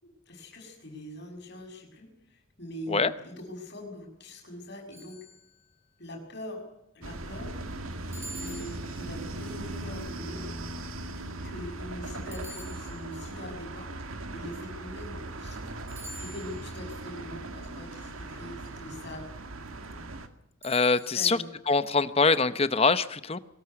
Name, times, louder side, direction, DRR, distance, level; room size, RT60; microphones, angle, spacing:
voice 1, 0.0-5.2 6.0-6.6 6.9-7.5 8.4-10.5 11.4-15.6 16.2-19.3 21.1-21.5, left 1 dB, 50° left, 2 dB, 6.4 m, -42 dB
sound 1, 4.9-5.8 8.1-9.4 12.3-13.4 15.9-16.8 20.6-21.4, right 1 dB, 10° right, 7.8 m, -47 dB
sound 2, 7.0-20.3, right 2 dB, 85° right, 2.0 m, -39 dB
voice 2, 20.6-21.4 21.7-23.4, left 4 dB, 30° left, 13 dB, 0.8 m, -24 dB
23.0 x 13.5 x 9.6 m, 0.80 s
head